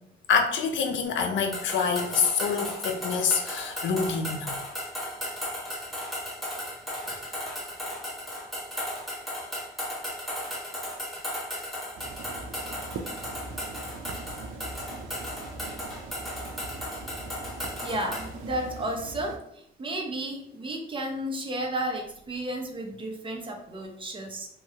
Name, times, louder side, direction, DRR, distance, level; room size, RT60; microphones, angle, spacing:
voice 1, 0.3-4.6, left 5 dB, 70° left, 5 dB, 0.6 m, -26 dB
sound 1, 1.5-18.3, equal, ahead, 1.0 m, -36 dB
sound 2, 12.0-19.4, right 3 dB, 75° right, 0.5 m, -41 dB
voice 2, 17.8-24.5, right 1 dB, 25° right, 2 dB, 0.7 m, -33 dB
3.2 x 2.3 x 2.8 m, 0.73 s
cardioid pair, 90°, 20 cm